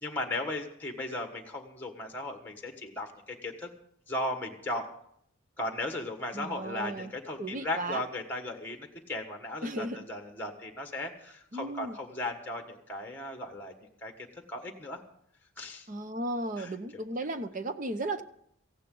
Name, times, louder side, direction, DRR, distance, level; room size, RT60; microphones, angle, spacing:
voice 1, 0.0-3.7 4.1-4.9 5.6-13.7 14.0-14.1 14.5-15.0 15.6-15.9 16.6-16.7, left 1 dB, 10° left, 4 dB, 1.5 m, -36 dB
voice 2, 6.3-7.1 7.4-8.0 9.6-10.0 11.5-12.0 15.9-18.2, right 1 dB, 35° right, 10 dB, 0.8 m, -35 dB
17.5 x 15.5 x 3.9 m, 0.69 s
head